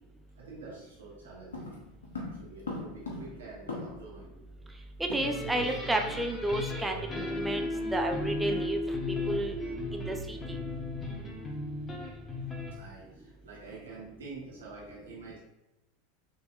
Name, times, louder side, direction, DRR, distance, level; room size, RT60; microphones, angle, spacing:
voice 1, 0.3-1.7 2.4-4.3 12.7-15.4, right 3 dB, 80° right, -4 dB, 1.1 m, -47 dB
sound 1, 1.5-4.2 4.5-4.6 4.8-5.8 6.1-6.3 6.7-6.9, left 3 dB, 85° left, 1.0 m, -41 dB
voice 2, 5.0-9.6 9.9-10.6, right 1 dB, 10° right, 4 dB, 0.6 m, -32 dB
sound 2, 5.2-12.8, left 1 dB, 25° left, 1.2 m, -35 dB
5.1 x 3.4 x 2.5 m, 0.97 s
hypercardioid pair, 90°, 0 cm